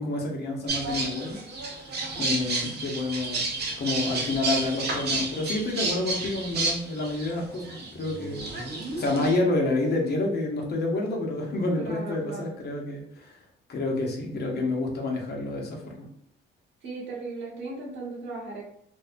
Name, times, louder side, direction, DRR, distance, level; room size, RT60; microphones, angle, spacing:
voice 1, 0.0-1.4 2.1-3.5 3.8-8.4 9.0-13.4 13.7-16.0, left 2 dB, 55° left, 0 dB, 0.8 m, -28 dB
sound 1, 0.7-9.4, right 3 dB, 55° right, 0.7 m, -31 dB
voice 2, 2.1-2.7 11.7-12.5 16.8-18.6, right 3 dB, 70° right, -3 dB, 1.0 m, -37 dB
2.6 x 2.1 x 2.5 m, 0.68 s
cardioid pair, 90°, 20 cm